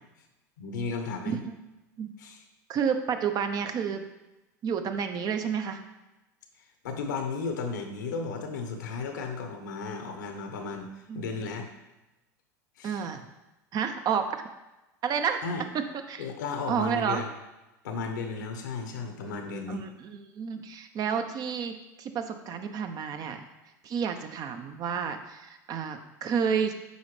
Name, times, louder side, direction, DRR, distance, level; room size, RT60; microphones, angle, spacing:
voice 1, 0.6-1.4 2.2-2.4 6.8-11.7 12.8-13.0 15.4-15.6 16.2-17.3 17.8-19.8, left 4 dB, 80° left, 5 dB, 1.1 m, -34 dB
voice 2, 1.2-1.6 2.0-2.1 2.7-4.1 4.6-5.8 11.1-11.2 12.8-13.2 13.7-14.4 15.0-15.4 16.1-16.3 16.7-17.2 19.7-23.5 23.8-26.7, right 7 dB, 45° right, 7 dB, 0.8 m, -30 dB
8.1 x 5.0 x 3.3 m, 1.0 s
hypercardioid pair, 85°, 10 cm